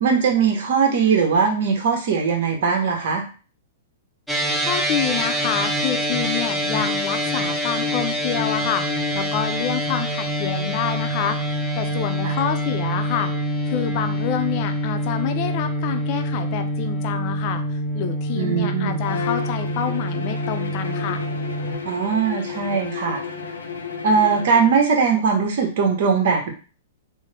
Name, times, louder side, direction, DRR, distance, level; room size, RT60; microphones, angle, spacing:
voice 1, 0.0-3.2 12.2-12.4 18.3-19.0 21.8-23.2 24.0-26.5, right 5 dB, 60° right, 2 dB, 0.9 m, -20 dB
sound 1, 4.3-21.7, equal, ahead, 0.6 m, -25 dB
voice 2, 4.7-11.4 11.8-13.3 13.7-17.6 17.9-21.2, left 9 dB, 45° left, 7 dB, 0.5 m, -27 dB
Bowed string instrument, 19.0-24.8, left 6 dB, 85° left, 0.6 m, -32 dB
3.6 x 2.1 x 3.3 m, 0.36 s
hypercardioid pair, 120°, 0 cm